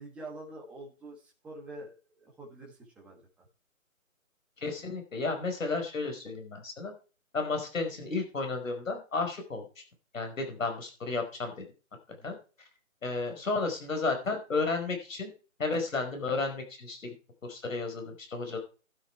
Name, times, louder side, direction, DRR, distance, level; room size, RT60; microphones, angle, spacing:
voice 1, 0.0-3.5 12.1-12.4 13.0-13.1, right 2 dB, 5° right, -2 dB, 1.3 m, -46 dB
voice 2, 4.6-6.9 7.3-9.7 10.1-11.6 12.2-12.4 13.0-15.3 15.6-17.1 17.4-18.6, left 3 dB, 65° left, 4 dB, 5.3 m, -32 dB
12.5 x 8.7 x 4.6 m, 0.35 s
hypercardioid pair, 160°, 42 cm